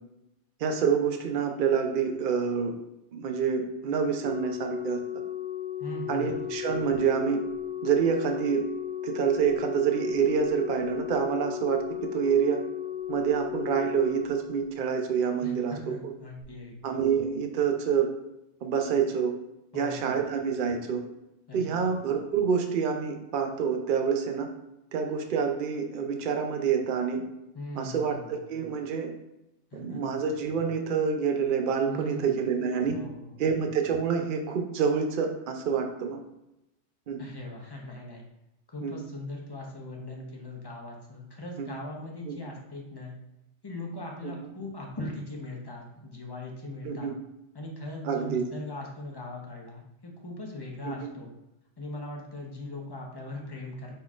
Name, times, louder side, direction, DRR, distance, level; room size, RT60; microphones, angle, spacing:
voice 1, 0.6-2.7 3.1-5.0 6.1-7.4 7.8-8.6 9.0-11.8 12.1-12.6 13.1-16.1 16.8-18.1 18.6-19.3 19.7-21.0 21.5-24.5 24.9-27.2 27.8-29.1 29.7-33.0 33.4-36.2 37.1-37.2 38.8-38.9 41.6-41.7 42.3-42.4 44.2-44.3 46.8-47.1 48.0-48.4 50.8-51.1, right 6 dB, 55° right, 4 dB, 0.7 m, -27 dB
Organ, 4.2-15.1 16.2-16.4, left 11 dB, 5° right, 1.0 m, -35 dB
voice 2, 5.8-6.3 15.4-16.9 19.7-20.2 21.5-21.9 27.5-28.3 29.7-30.2 31.9-32.4 32.9-33.4 37.2-38.2 38.7-43.1 43.6-47.1 47.5-51.3 51.8-54.0, left 1 dB, 25° left, -1 dB, 0.8 m, -40 dB
5.2 x 3.9 x 2.4 m, 0.88 s
omnidirectional pair, 1.2 m